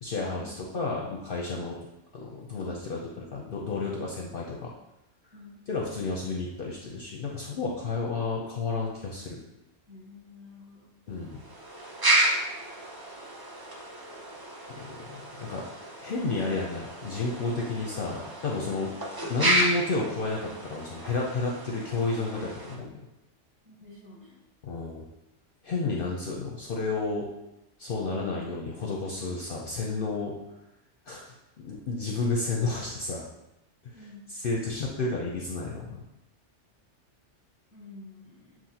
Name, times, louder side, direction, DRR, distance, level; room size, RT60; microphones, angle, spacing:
voice 1, 0.0-1.8 2.1-4.7 5.7-9.4 11.1-11.4 14.8-15.6 16.0-18.9 19.3-23.0 24.6-25.0 25.6-27.3 27.8-30.3 31.1-33.3 33.9-36.0, left 3 dB, 55° left, -2 dB, 0.7 m, -31 dB
voice 2, 9.9-10.9 23.7-24.4 33.9-34.2 37.7-38.6, left 3 dB, 10° right, -4 dB, 0.9 m, -49 dB
sound 1, 11.2-22.8, right 1 dB, 30° right, 0.4 m, -31 dB
7.4 x 2.5 x 2.8 m, 0.89 s
omnidirectional pair, 1.2 m